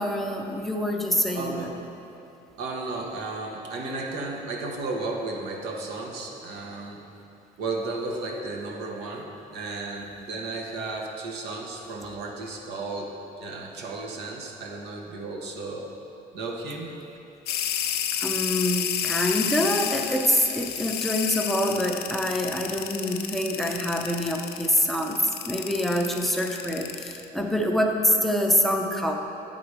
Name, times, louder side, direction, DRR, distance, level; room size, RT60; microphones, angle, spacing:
voice 1, 0.0-1.7 18.2-29.2, equal, ahead, 2 dB, 0.6 m, -25 dB
voice 2, 1.3-1.8 2.6-7.0 7.6-15.9 16.3-16.9, right 3 dB, 75° right, 1 dB, 1.0 m, -34 dB
sound 1, 17.5-27.2, left 10 dB, 75° left, 0.5 m, -30 dB
8.5 x 3.9 x 4.7 m, 2.7 s
cardioid pair, 110°, 17 cm